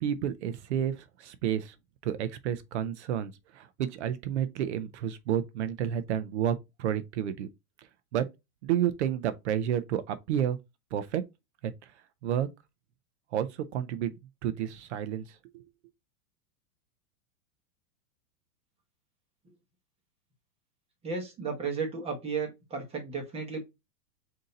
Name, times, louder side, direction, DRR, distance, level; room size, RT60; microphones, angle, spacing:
voice 1, 0.0-1.7 2.0-7.5 8.1-8.3 8.6-10.6 10.9-11.2 11.6-11.7 12.2-12.5 13.3-14.2 14.4-15.2 15.5-15.6, right 10 dB, 50° right, 0.5 m, -30 dB
voice 2, 21.0-23.6, right 5 dB, 15° right, 1.0 m, -34 dB
3.8 x 2.8 x 3.8 m
supercardioid pair, 160°, 46 cm